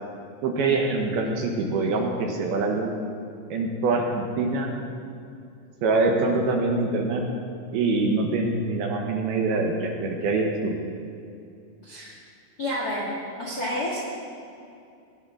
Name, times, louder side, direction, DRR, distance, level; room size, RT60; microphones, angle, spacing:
voice 1, 0.4-2.9 3.5-4.7 5.8-7.2 7.7-10.8, right 3 dB, 75° right, 2 dB, 2.6 m, -24 dB
voice 2, 12.6-13.1 13.4-14.0, left 1 dB, 40° left, -6 dB, 1.4 m, -29 dB
18.0 x 9.8 x 3.7 m, 2.4 s
omnidirectional pair, 4.9 m